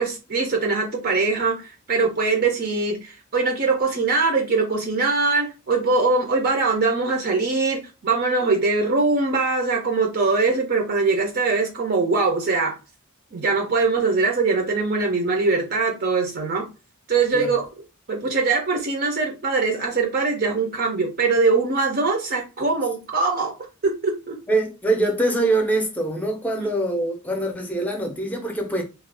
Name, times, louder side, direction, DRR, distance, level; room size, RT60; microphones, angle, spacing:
voice 1, 0.0-12.8 13.3-16.7 17.1-17.6 18.1-23.5 23.8-24.4 26.6-26.7, right 3 dB, 45° right, 0.6 m, -22 dB
voice 2, 24.5-28.8, right 2 dB, 5° left, 0.6 m, -23 dB
2.4 x 2.3 x 3.4 m
head